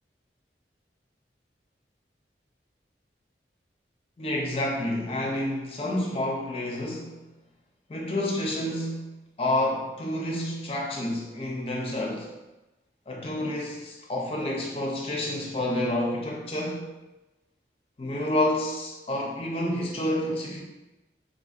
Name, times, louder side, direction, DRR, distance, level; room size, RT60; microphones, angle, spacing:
voice 1, 4.2-7.2 7.9-12.3 13.1-16.9 18.0-20.6, left 1 dB, 35° left, -1 dB, 0.5 m, -29 dB
3.6 x 2.6 x 2.3 m, 1.1 s
head